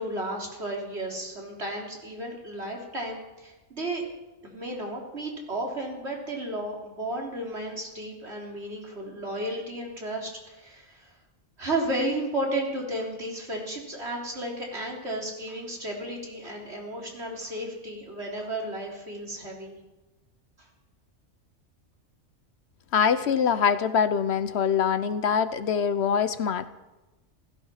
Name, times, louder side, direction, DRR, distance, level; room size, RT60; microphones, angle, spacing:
voice 1, 0.0-4.0 4.4-11.1 11.6-19.8 20.6-20.7, right 1 dB, 60° right, -1 dB, 3.7 m, -33 dB
voice 2, 22.9-26.7, left 7 dB, 65° left, 13 dB, 1.0 m, -24 dB
16.0 x 15.5 x 5.7 m, 1.1 s
omnidirectional pair, 1.2 m